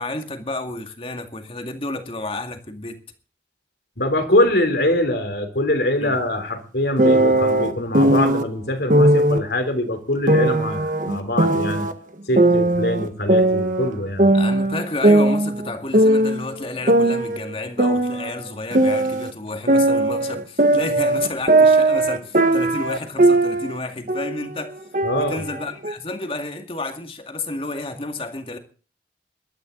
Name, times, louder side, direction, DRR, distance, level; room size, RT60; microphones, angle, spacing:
voice 1, 0.0-3.0 6.0-6.2 14.3-24.8 25.1-28.6, left 2 dB, 30° left, 2.2 m, -30 dB
voice 2, 4.0-11.9 12.3-14.3 25.0-25.4, left 1 dB, 70° left, 3.5 m, -23 dB
sound 1, 7.0-8.4 8.9-9.4 10.3-11.9 12.4-13.9 14.2-16.5 16.9-19.3 19.7-23.8 24.1-24.5 24.9-25.9, right 2 dB, 45° right, 1.4 m, -18 dB
20.0 x 12.5 x 3.9 m
head